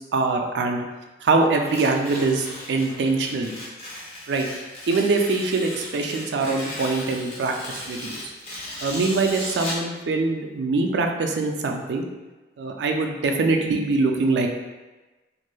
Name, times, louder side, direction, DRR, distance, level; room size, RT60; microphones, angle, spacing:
voice 1, 0.1-0.8 1.2-3.5 4.3-4.5 4.9-8.2 8.8-12.0 12.6-14.5, right 3 dB, 65° right, 3 dB, 0.3 m, -23 dB
Tearing, 1.6-9.9, left 1 dB, 35° left, 0.6 m, -36 dB
3.1 x 2.5 x 2.2 m, 1.2 s
head